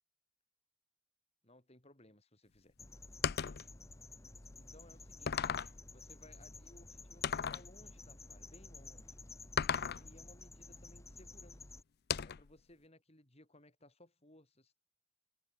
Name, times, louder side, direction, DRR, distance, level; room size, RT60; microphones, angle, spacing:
voice 1, 1.4-2.7 4.6-5.5 5.9-9.2 9.6-11.8 12.2-14.8, left 1 dB, 30° left, 5.2 m, -62 dB
sound 1, 2.8-11.8, left 3 dB, 15° left, 1.2 m, -53 dB
sound 2, 3.2-3.7 4.5-4.6 5.3-5.8 7.2-7.7 9.6-10.1 12.1-12.5, left 7 dB, 50° left, 0.5 m, -35 dB
open air
head